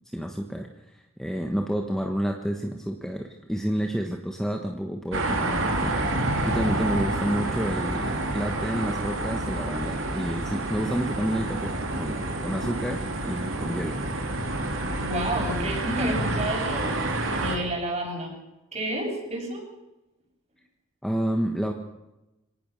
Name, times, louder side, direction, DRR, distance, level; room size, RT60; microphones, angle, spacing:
voice 1, 0.1-14.0 21.0-21.7, equal, ahead, 3 dB, 1.4 m, -30 dB
sound 1, 5.1-17.6, right 2 dB, 70° right, 3.8 m, -28 dB
voice 2, 14.9-17.0 17.3-18.3 18.7-19.6, right 1 dB, 30° right, 0 dB, 7.8 m, -30 dB
26.0 x 18.5 x 6.6 m, 0.99 s
head